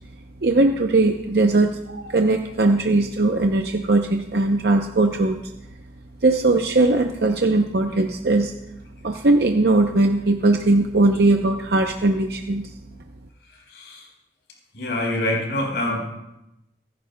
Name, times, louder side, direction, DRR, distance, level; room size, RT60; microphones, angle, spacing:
voice 1, 0.4-5.4 6.2-8.5 9.0-12.7, right 2 dB, 65° right, 4 dB, 0.7 m, -19 dB
voice 2, 13.7-14.1 14.7-16.2, left 1 dB, 85° left, 0 dB, 4.3 m, -25 dB
25.0 x 11.0 x 2.2 m, 0.92 s
head